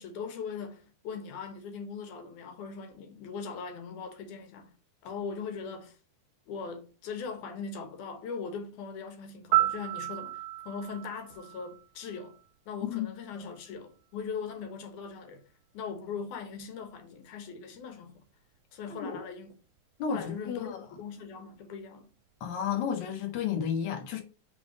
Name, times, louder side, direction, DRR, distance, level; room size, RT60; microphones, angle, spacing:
voice 1, 0.0-4.7 5.0-6.0 6.5-12.4 12.7-15.4 15.7-18.2 18.7-19.5 20.1-22.1, left 5 dB, 85° left, 2.6 m, -40 dB
Piano, 9.5-12.4 20.6-20.8, right 16 dB, 85° right, 2.1 m, -32 dB
voice 2, 20.0-20.8 22.4-24.2, left 7 dB, 50° left, 1.6 m, -32 dB
5.3 x 3.4 x 5.2 m
omnidirectional pair, 3.5 m